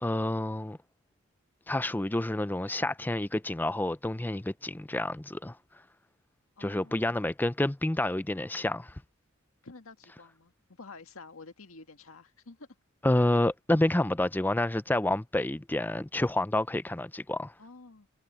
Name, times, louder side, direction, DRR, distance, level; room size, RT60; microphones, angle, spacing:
voice 1, 0.0-0.8 1.7-5.6 6.6-9.0 13.0-17.5, left 1 dB, 10° left, 0.5 m, -29 dB
voice 2, 6.6-7.2 9.6-12.7 17.6-18.1, left 3 dB, 90° left, 1.9 m, -50 dB
head